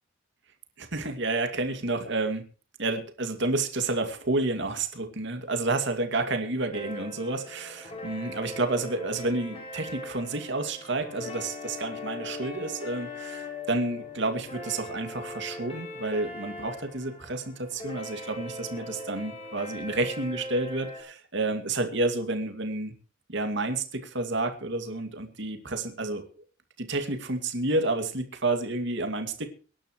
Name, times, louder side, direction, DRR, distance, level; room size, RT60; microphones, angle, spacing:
voice 1, 0.8-2.4 2.8-22.9 23.3-26.3 26.8-29.5, right 2 dB, 65° right, 6 dB, 2.4 m, -30 dB
sound 1, 6.7-21.0, left 2 dB, 30° left, 6.2 m, -40 dB
23.5 x 11.5 x 3.1 m, 0.37 s
head